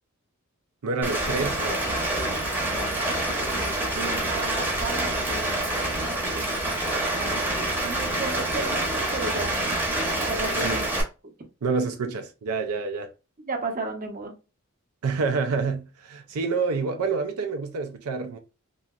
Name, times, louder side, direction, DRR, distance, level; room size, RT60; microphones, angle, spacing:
voice 1, 0.8-1.8 3.9-4.0 10.6-10.8 11.6-13.1 15.0-18.4, right 4 dB, 85° right, 0.5 m, -28 dB
Rain, 1.0-11.0, right 1 dB, 10° right, 0.8 m, -27 dB
voice 2, 2.6-3.1 3.5-9.6 10.2-10.9 13.5-14.3, right 2 dB, 40° right, 0.7 m, -35 dB
3.0 x 2.8 x 2.3 m
head